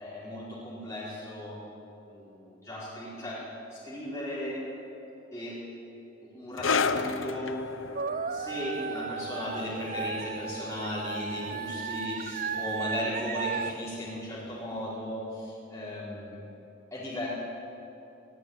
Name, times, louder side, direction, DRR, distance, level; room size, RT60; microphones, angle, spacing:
voice 1, 0.0-1.6 2.0-3.4 3.7-4.6 5.3-5.6 6.3-7.6 8.3-16.4 16.9-17.3, left 1 dB, 15° left, -9 dB, 5.0 m, -36 dB
sound 1, 6.6-13.6 13.8-14.1 14.8-14.9, left 4 dB, 90° left, 0.9 m, -34 dB
sound 2, 8.0-13.7, right 5 dB, 45° right, 0.6 m, -35 dB
19.0 x 18.5 x 9.2 m, 2.9 s
head